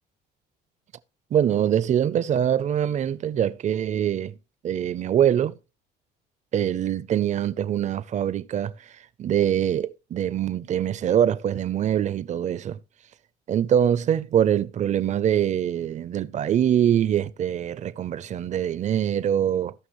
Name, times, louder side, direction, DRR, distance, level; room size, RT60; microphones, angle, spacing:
voice 1, 1.3-4.4 4.6-5.6 6.5-8.7 9.2-12.8 13.5-19.7, right 10 dB, 45° right, 0.6 m, -23 dB
16.5 x 6.0 x 3.1 m
cardioid pair, 110°, 17 cm